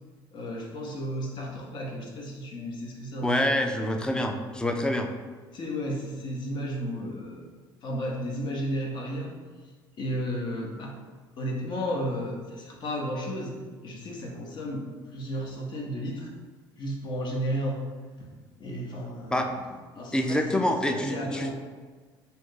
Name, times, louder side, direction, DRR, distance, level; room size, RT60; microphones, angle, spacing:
voice 1, 0.3-3.4 3.8-3.9 5.5-7.5 7.8-9.3 10.0-11.0 11.4-16.3 16.8-17.8 18.2-18.3 18.6-21.5, equal, 50° left, 0 dB, 0.7 m, -33 dB
voice 2, 3.2-5.1 19.3-19.5 20.1-21.5, left 1 dB, 10° left, 5 dB, 0.3 m, -26 dB
2.7 x 2.4 x 3.7 m, 1.4 s
cardioid pair, 105°, 10 cm